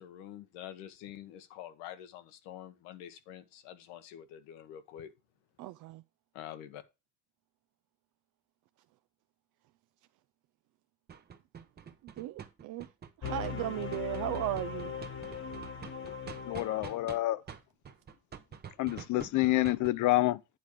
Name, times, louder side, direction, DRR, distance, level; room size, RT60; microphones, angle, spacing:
voice 1, 0.0-5.1 6.3-6.8, left 11 dB, 85° left, 1.2 m, -47 dB
voice 2, 5.6-6.0 12.0-12.9 13.2-14.9 16.9-17.0, right 15 dB, 50° right, 0.4 m, -36 dB
sound 1, 11.1-17.2 17.5-19.9, right 7 dB, 25° right, 0.8 m, -46 dB
sound 2, 13.2-17.1, left 7 dB, 30° left, 1.3 m, -40 dB
voice 3, 16.5-17.4 18.8-20.4, left 17 dB, 45° left, 0.5 m, -28 dB
9.3 x 3.5 x 6.4 m
cardioid pair, 130°, 42 cm